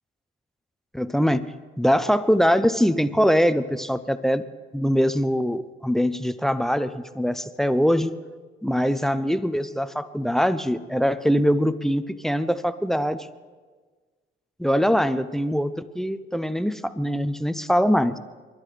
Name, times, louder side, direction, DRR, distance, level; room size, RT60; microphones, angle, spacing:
voice 1, 0.9-1.5 1.8-4.4 4.7-8.2 8.6-13.3 14.6-18.1, equal, ahead, 13 dB, 0.6 m, -22 dB
29.0 x 12.0 x 3.3 m, 1.4 s
cardioid pair, 90°, 20 cm